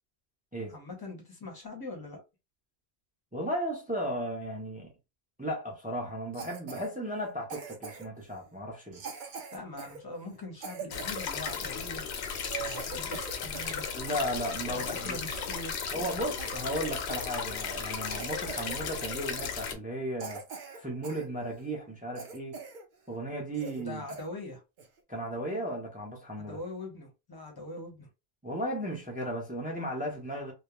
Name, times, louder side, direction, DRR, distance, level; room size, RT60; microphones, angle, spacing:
voice 1, 0.7-2.2 9.5-12.0 12.6-13.9 14.7-15.9 23.7-24.6 26.4-28.1, left 2 dB, 25° left, 0.7 m, -42 dB
voice 2, 3.3-4.9 5.4-9.0 13.9-15.2 15.9-20.4 20.8-22.6 23.1-24.0 25.1-26.6 28.4-30.5, equal, 10° right, 0.4 m, -35 dB
Cough, 6.3-6.9 7.5-8.2 8.9-11.6 12.1-12.2 12.4-13.8 14.1-15.5 16.0-16.1 16.4-17.3 17.6-17.8 18.2-18.8 19.0-19.2 19.7-19.8 20.2-21.3 21.6-21.7 22.2-22.8 23.1-23.2 23.5-23.8 24.1-24.2 24.8-25.0, right 5 dB, 55° right, 0.6 m, -42 dB
sound 1, 10.9-19.7, left 6 dB, 85° left, 0.9 m, -35 dB
2.3 x 2.1 x 2.9 m
omnidirectional pair, 1.1 m